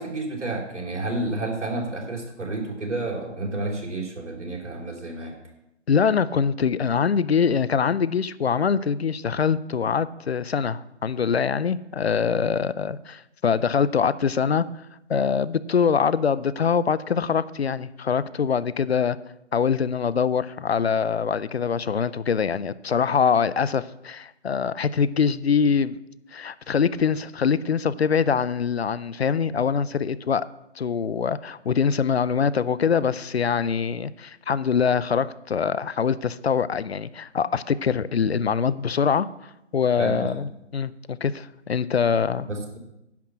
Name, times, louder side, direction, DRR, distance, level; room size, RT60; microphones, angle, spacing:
voice 1, 0.0-5.3 40.0-40.4 42.5-42.8, right 2 dB, 80° right, 0 dB, 3.6 m, -30 dB
voice 2, 5.9-14.7 15.1-19.2 19.5-26.0 26.3-30.5 30.8-39.3 39.7-42.5, left 6 dB, 65° left, 18 dB, 0.5 m, -23 dB
10.5 x 5.9 x 7.3 m, 0.86 s
hypercardioid pair, 175°, 35 cm